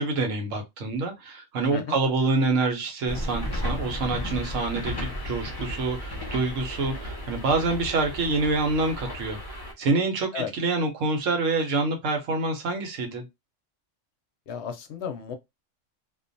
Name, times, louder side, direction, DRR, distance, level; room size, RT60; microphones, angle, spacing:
voice 1, 0.0-9.4 9.8-13.2, right 3 dB, 90° right, 1.1 m, -26 dB
sound 1, 3.1-9.7, equal, 30° left, 0.4 m, -34 dB
voice 2, 14.5-15.3, left 6 dB, 70° left, 0.8 m, -33 dB
2.5 x 2.2 x 2.5 m
omnidirectional pair, 1.3 m